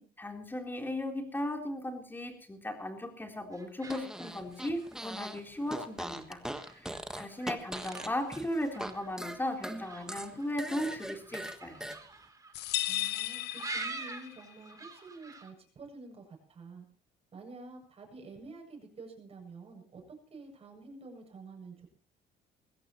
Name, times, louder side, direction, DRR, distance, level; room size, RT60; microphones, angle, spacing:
voice 1, 0.2-6.4 6.8-11.9, left 1 dB, 10° left, 3 dB, 3.8 m, -36 dB
sound 1, 3.5-15.5, right 3 dB, 20° right, 3.4 m, -47 dB
Fart, 3.8-5.4 5.7-8.9 9.2-12.0, right 1 dB, 5° right, 1.5 m, -40 dB
sound 2, 12.5-14.5, left 15 dB, 80° left, 0.7 m, -35 dB
voice 2, 12.9-16.9 17.3-21.9, right 3 dB, 35° right, 2 dB, 7.8 m, -49 dB
21.5 x 16.5 x 3.1 m, 0.43 s
cardioid pair, 110°, 17 cm